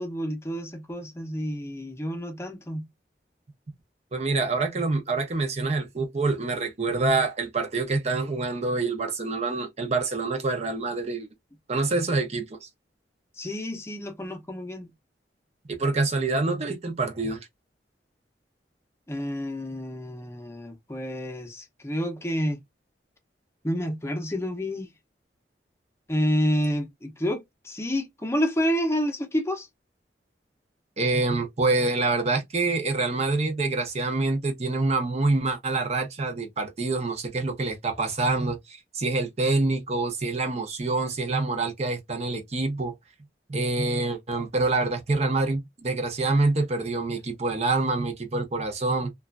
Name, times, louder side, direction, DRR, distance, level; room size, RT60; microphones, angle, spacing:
voice 1, 0.0-2.8 13.3-14.9 19.1-22.6 23.6-24.9 26.1-29.7, equal, 15° left, 0.6 m, -29 dB
voice 2, 4.1-11.3 11.7-12.7 15.7-17.4 31.0-42.9 43.5-49.1, right 3 dB, 40° right, 0.6 m, -26 dB
2.9 x 2.3 x 2.3 m
head